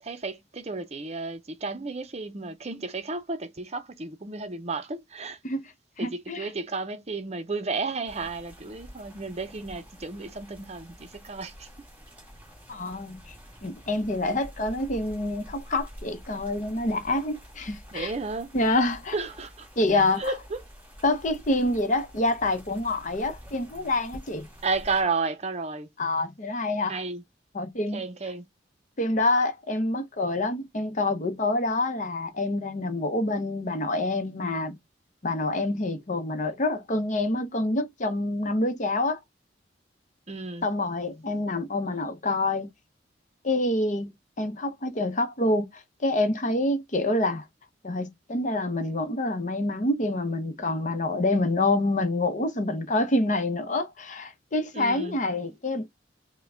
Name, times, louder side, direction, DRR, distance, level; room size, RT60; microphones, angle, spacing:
voice 1, 0.0-5.4 6.0-11.7 17.9-18.5 19.1-19.7 20.2-20.6 24.6-25.9 26.9-27.2 27.9-28.5 40.3-40.7 54.7-55.2, right 3 dB, 35° right, 0.6 m, -32 dB
voice 2, 6.0-6.5 12.7-13.3 13.6-18.1 18.5-19.1 19.8-20.3 21.0-24.5 26.0-26.9 27.5-28.0 29.0-34.8 35.2-39.2 40.6-42.7 43.4-47.4 47.8-55.9, left 2 dB, 40° left, 0.8 m, -27 dB
sound 1, 8.1-25.0, equal, 10° right, 2.6 m, -48 dB
5.6 x 2.2 x 3.7 m
head